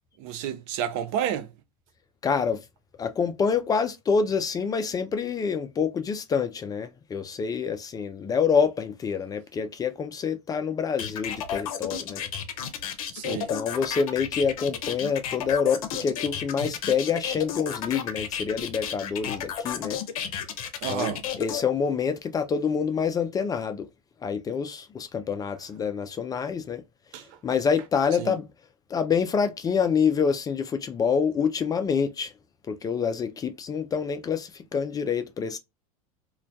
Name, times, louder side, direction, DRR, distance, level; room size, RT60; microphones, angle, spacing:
voice 1, 0.2-1.5 13.1-13.5 19.8-20.0 20.8-21.2 27.1-27.4 28.2-28.3, right 9 dB, 60° right, 0.5 m, -30 dB
voice 2, 2.2-2.6 3.0-12.2 13.3-20.0 20.9-23.9 24.2-26.8 27.4-28.5 28.9-32.3 32.7-35.6, left 6 dB, 20° left, 0.3 m, -27 dB
sound 1, 11.0-21.6, left 8 dB, 75° left, 0.6 m, -32 dB
2.2 x 2.1 x 2.6 m
hypercardioid pair, 100°, 18 cm